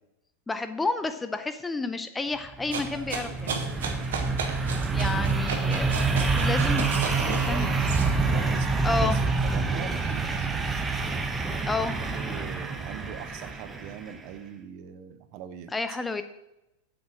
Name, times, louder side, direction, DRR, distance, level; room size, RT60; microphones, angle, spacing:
voice 1, 0.5-3.6 4.9-6.0 6.4-7.7 8.8-9.2 11.6-12.5 15.7-16.2, left 3 dB, 10° left, 10 dB, 0.6 m, -31 dB
sound 1, 2.5-14.2, right 4 dB, 15° right, 1.2 m, -27 dB
sound 2, 2.7-8.3 8.8-10.2, right 5 dB, 60° right, 1.5 m, -35 dB
voice 2, 6.1-10.8 11.9-15.7, right 9 dB, 45° right, 10 dB, 1.0 m, -41 dB
8.2 x 7.7 x 6.1 m, 0.90 s
figure-of-eight pair, 90°, 0 cm